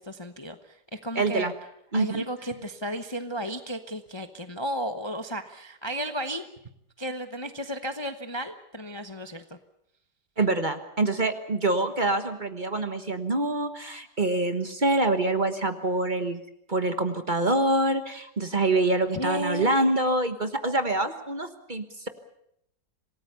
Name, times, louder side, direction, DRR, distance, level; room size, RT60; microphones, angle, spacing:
voice 1, 0.0-1.5 1.9-6.5 7.0-9.4 19.1-19.7, equal, 20° left, 8 dB, 0.9 m, -33 dB
voice 2, 1.1-1.5 1.9-2.2 10.4-16.4 16.7-22.1, right 2 dB, 30° right, 8 dB, 1.4 m, -25 dB
27.0 x 18.5 x 7.0 m, 0.75 s
omnidirectional pair, 1.7 m